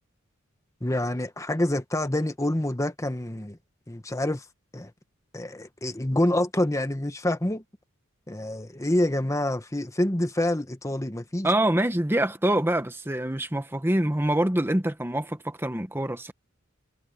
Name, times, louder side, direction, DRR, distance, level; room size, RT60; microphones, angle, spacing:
voice 1, 0.8-3.6 3.9-4.4 4.7-4.9 5.3-7.6 8.3-11.5, left 1 dB, 15° left, 1.2 m, -27 dB
voice 2, 11.4-16.3, right 1 dB, 10° right, 1.2 m, -25 dB
head